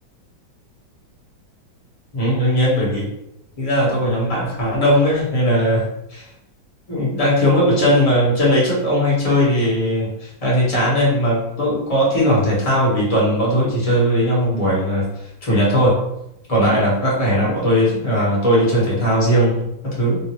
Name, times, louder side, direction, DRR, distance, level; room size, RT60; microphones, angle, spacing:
voice 1, 2.1-3.0 3.6-5.8 6.1-6.2 6.9-15.0 15.4-16.0 16.5-20.2, equal, 25° left, -6 dB, 0.8 m, -18 dB
3.7 x 2.5 x 2.9 m, 0.84 s
omnidirectional pair, 2.2 m